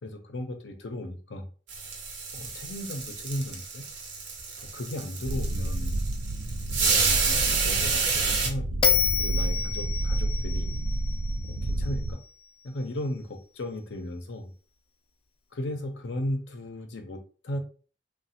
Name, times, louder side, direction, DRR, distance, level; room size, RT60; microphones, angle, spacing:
voice 1, 0.0-1.5 2.3-3.8 4.7-6.0 6.7-8.8 9.2-10.7 11.6-12.2 12.6-14.5 15.5-17.6, left 1 dB, 90° left, 5 dB, 0.6 m, -35 dB
sound 1, 1.7-8.5, right 4 dB, 90° right, 0.8 m, -29 dB
sound 2, 5.3-12.1, right 1 dB, 65° right, 0.4 m, -30 dB
Bell, 8.8-12.1, left 7 dB, 30° left, 0.3 m, -28 dB
3.1 x 2.2 x 2.7 m, 0.39 s
head